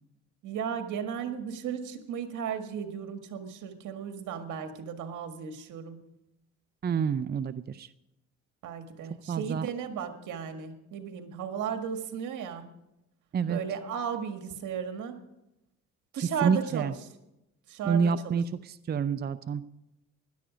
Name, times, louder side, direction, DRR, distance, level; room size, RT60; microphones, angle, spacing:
voice 1, 0.4-6.0 8.6-12.7 13.5-15.2 16.1-16.9 17.7-18.3, right 7 dB, 80° right, 6 dB, 1.8 m, -35 dB
voice 2, 6.8-7.9 9.3-9.7 13.3-13.6 16.2-16.9 17.8-19.6, right 6 dB, 35° right, 13 dB, 0.5 m, -28 dB
17.0 x 11.5 x 5.1 m, 0.89 s
cardioid pair, 90°, 30 cm